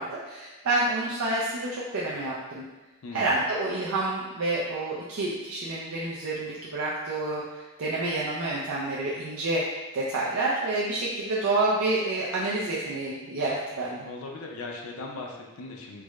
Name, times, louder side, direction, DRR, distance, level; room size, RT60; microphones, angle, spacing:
voice 1, 0.0-2.6 3.1-9.6 9.9-14.1, right 2 dB, 70° right, -6 dB, 0.4 m, -28 dB
voice 2, 3.0-3.4 14.1-16.0, left 3 dB, 70° left, 0 dB, 0.5 m, -39 dB
4.5 x 2.1 x 2.4 m, 1.1 s
head